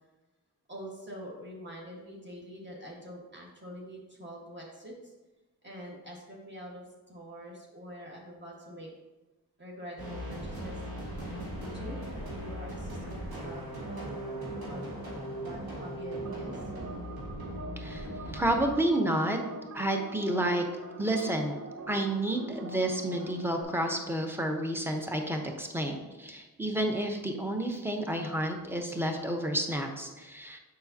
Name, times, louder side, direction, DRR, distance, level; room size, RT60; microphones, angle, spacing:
voice 1, 0.7-5.1 5.6-8.9 9.6-10.8 11.6-14.9 15.3-16.6, equal, 30° right, -3 dB, 1.5 m, -45 dB
sound 1, 10.0-18.7, right 1 dB, 80° right, 1.9 m, -38 dB
sound 2, 16.3-23.6, right 3 dB, 45° right, 0.8 m, -44 dB
voice 2, 17.8-19.4 19.7-20.6 21.0-21.6 21.9-30.6, right 1 dB, 5° right, 3 dB, 0.9 m, -30 dB
6.8 x 5.1 x 2.7 m, 1.2 s
cardioid pair, 55°, 36 cm